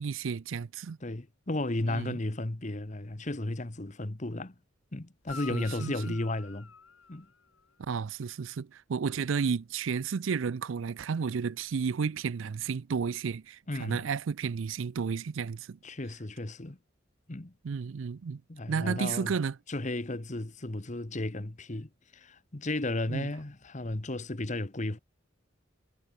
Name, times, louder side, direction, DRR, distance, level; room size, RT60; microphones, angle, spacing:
voice 1, 0.0-1.0 1.9-2.2 5.5-5.9 7.8-15.8 17.6-18.4 18.7-19.6 23.1-23.3, right 6 dB, 70° right, 0.4 m, -32 dB
voice 2, 1.0-4.5 4.9-6.7 7.1-7.3 13.7-14.0 15.8-16.8 17.3-17.5 18.5-19.4 19.7-25.0, left 2 dB, 35° left, 1.2 m, -34 dB
Guitar, 5.2-7.8 11.7-11.8, left 5 dB, 85° left, 4.1 m, -47 dB
head